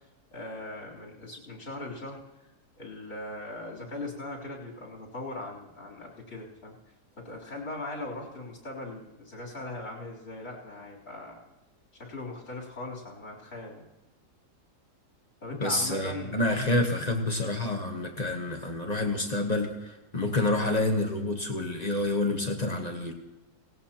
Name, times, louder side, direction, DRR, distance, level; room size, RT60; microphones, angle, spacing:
voice 1, 0.3-2.2 2.8-6.8 7.2-11.4 12.0-13.9 15.4-16.4, left 2 dB, 55° left, -3 dB, 3.7 m, -39 dB
voice 2, 15.6-23.1, left 2 dB, 30° left, 3 dB, 1.1 m, -28 dB
17.5 x 17.5 x 2.9 m, 1.0 s
omnidirectional pair, 1.7 m